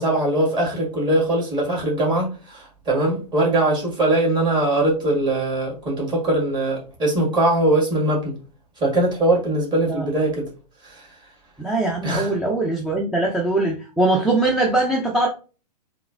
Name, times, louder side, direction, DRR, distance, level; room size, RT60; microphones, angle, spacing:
voice 1, 0.0-8.4 8.8-10.5 10.8-11.1 12.0-12.3, right 1 dB, 20° right, 1.7 m, -21 dB
voice 2, 11.6-15.3, right 2 dB, ahead, 0.3 m, -21 dB
3.7 x 2.8 x 2.4 m
figure-of-eight pair, 105°, 21 cm